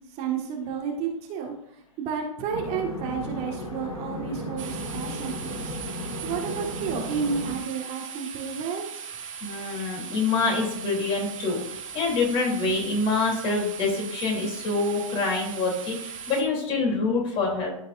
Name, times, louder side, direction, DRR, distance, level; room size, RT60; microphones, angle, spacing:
voice 1, 0.2-1.5 2.0-5.7 6.2-9.1, right 6 dB, 35° right, 0 dB, 1.6 m, -31 dB
sound 1, 2.5-7.6, equal, 90° left, 1.9 m, -35 dB
sound 2, 4.6-16.4, right 7 dB, 65° right, 1.2 m, -39 dB
voice 2, 9.4-11.6 11.9-17.7, left 3 dB, 30° left, 0 dB, 3.1 m, -26 dB
14.0 x 5.2 x 2.5 m, 0.75 s
figure-of-eight pair, 105°, 18 cm